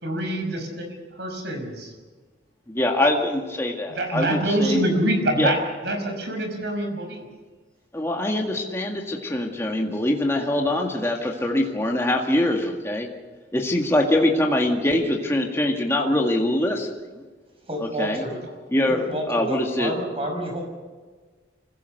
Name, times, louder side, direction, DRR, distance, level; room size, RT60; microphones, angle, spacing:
voice 1, 0.0-1.9 3.9-5.6 5.8-7.2, right 1 dB, 65° right, 4 dB, 5.5 m, -25 dB
voice 2, 2.7-4.8 5.4-5.5 7.9-13.1 13.5-16.9 17.2-17.3 17.8-18.2 18.7-19.9, left 1 dB, 15° left, 0 dB, 1.9 m, -23 dB
voice 3, 17.7-18.4 18.9-20.6, equal, 30° right, 3 dB, 5.7 m, -30 dB
25.5 x 16.5 x 6.7 m, 1.4 s
head